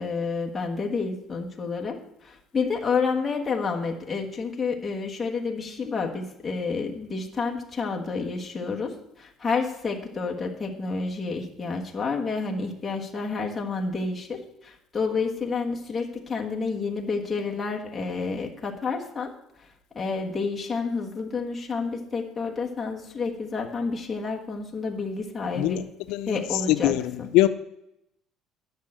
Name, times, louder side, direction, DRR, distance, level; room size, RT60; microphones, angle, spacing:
voice 1, 0.0-19.3 19.6-19.7 19.9-25.8 26.3-27.3, left 4 dB, 15° left, 0 dB, 1.3 m, -29 dB
voice 2, 25.6-25.8 26.1-26.4 26.8-27.0 27.3-27.5, left 16 dB, 80° left, 10 dB, 0.5 m, -21 dB
10.5 x 5.6 x 8.6 m, 0.82 s
cardioid pair, 175°, 0 cm